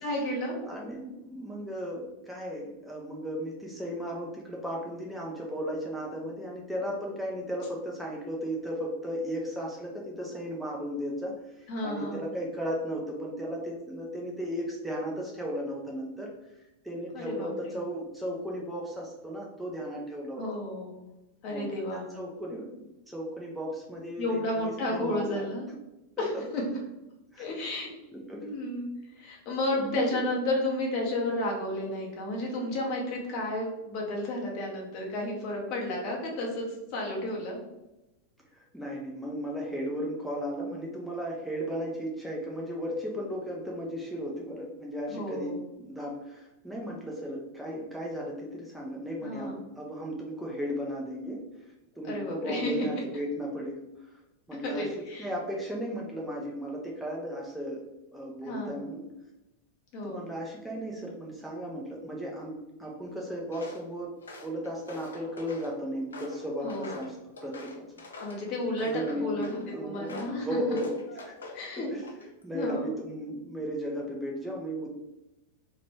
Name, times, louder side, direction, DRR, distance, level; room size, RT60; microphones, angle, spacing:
voice 1, 0.0-0.6 11.7-12.2 17.1-17.7 20.4-21.0 21.4-22.1 24.2-25.7 26.2-26.6 27.4-28.0 28.4-28.9 29.1-36.7 36.9-37.6 45.1-45.6 49.2-49.6 52.0-52.9 54.6-55.3 58.4-58.8 59.9-60.2 66.6-67.0 68.2-69.5 69.8-70.6 71.1-71.2 71.5-72.3 72.5-72.9, left 1 dB, 45° left, -2 dB, 1.0 m, -32 dB
voice 2, 0.6-16.3 16.8-20.4 21.5-25.5 26.2-26.3 27.3-27.5 28.3-28.7 29.7-30.3 38.5-54.2 54.5-57.8 58.1-59.0 60.0-64.1 64.4-67.2 67.4-67.8 68.9-71.3 71.9-72.1 72.4-74.9, equal, ahead, -3 dB, 0.6 m, -35 dB
Walk footsteps, 63.5-63.8 64.2-65.7 66.1-68.4 68.8-69.7 70.1-70.4 70.8-71.6 72.0-72.4, left 3 dB, 70° left, 0.4 m, -45 dB
2.8 x 2.5 x 3.2 m, 0.96 s
figure-of-eight pair, 90°, 0 cm